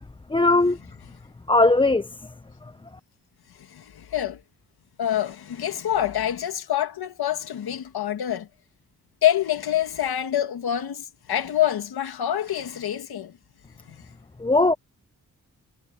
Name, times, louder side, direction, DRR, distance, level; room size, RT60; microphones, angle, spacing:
voice 1, 0.3-0.8 1.5-2.1 14.4-14.7, left 2 dB, 15° left, 0.6 m, -18 dB
voice 2, 3.6-4.4 5.0-8.5 9.2-13.3 13.9-14.0, left 11 dB, 85° left, 2.1 m, -26 dB
cardioid pair, 90°, 37 cm